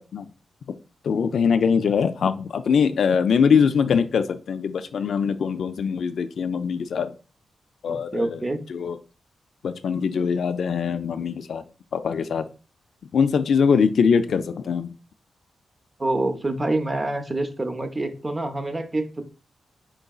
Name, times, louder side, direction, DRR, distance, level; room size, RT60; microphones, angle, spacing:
voice 1, 1.0-7.1 7.8-8.4 8.7-9.0 9.6-11.6 11.9-12.4 13.1-14.9, left 6 dB, 70° left, 10 dB, 0.3 m, -22 dB
voice 2, 7.9-8.6 16.0-19.2, right 2 dB, 25° right, 8 dB, 0.6 m, -26 dB
4.5 x 3.9 x 2.3 m, 0.34 s
wide cardioid pair, 125°, 0 cm